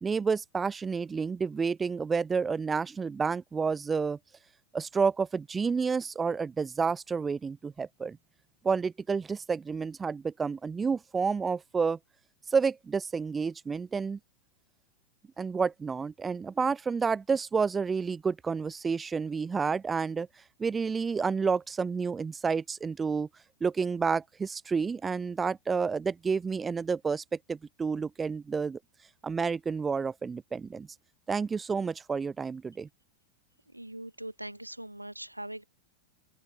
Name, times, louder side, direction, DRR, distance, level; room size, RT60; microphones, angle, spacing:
voice 1, 0.0-4.2 4.7-8.2 8.6-12.0 12.5-14.2 15.4-20.3 20.6-23.3 23.6-28.8 29.2-30.9 31.3-32.9, right 5 dB, 15° right, 0.5 m, -30 dB
voice 2, 33.7-35.6, right 1 dB, 85° right, 1.2 m, -41 dB
open air
figure-of-eight pair, 90°, 0 cm